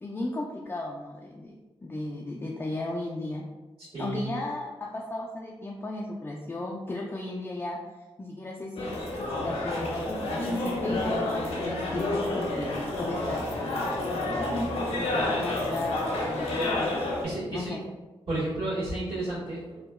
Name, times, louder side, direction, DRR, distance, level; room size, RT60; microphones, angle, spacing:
voice 1, 0.0-3.5 4.0-7.8 8.2-8.9 9.4-14.0 14.9-17.0 17.5-17.8, left 2 dB, 20° left, -2 dB, 0.3 m, -35 dB
voice 2, 3.9-4.3 17.2-17.8 18.3-19.8, right 1 dB, 70° right, -16 dB, 1.5 m, -32 dB
sound 1, 8.8-17.2, left 2 dB, 75° left, 0.6 m, -29 dB
2.7 x 2.1 x 2.2 m, 1.2 s
cardioid pair, 50°, 10 cm